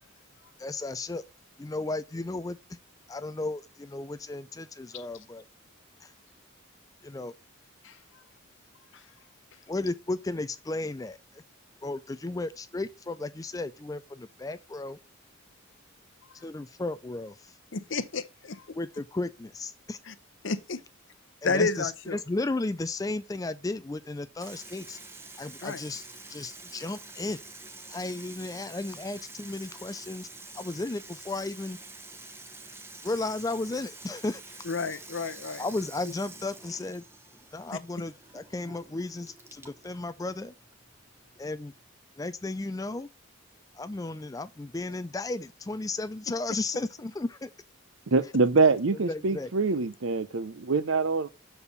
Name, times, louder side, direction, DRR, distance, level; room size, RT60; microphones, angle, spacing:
voice 1, 0.6-1.2 1.6-2.6 3.1-5.4 6.0-6.1 7.0-7.3 9.7-11.4 11.8-15.0 16.3-17.6 18.7-20.0 21.4-25.0 25.4-27.4 27.9-30.3 30.6-31.8 33.0-34.6 35.6-37.0 37.5-40.5 41.4-41.7 42.2-43.1 43.7-47.5 48.9-49.5, left 2 dB, 15° left, 0.3 m, -34 dB
voice 2, 17.7-18.6 20.1-20.2 20.4-20.8 21.4-22.2 25.6-25.8 34.7-35.6, left 4 dB, 60° left, 0.7 m, -30 dB
Water tap faucet / Sink (filling or washing), 24.4-41.9, right 3 dB, 10° right, 0.9 m, -47 dB
voice 3, 48.1-51.3, right 4 dB, 65° right, 0.6 m, -24 dB
6.9 x 4.4 x 6.8 m
head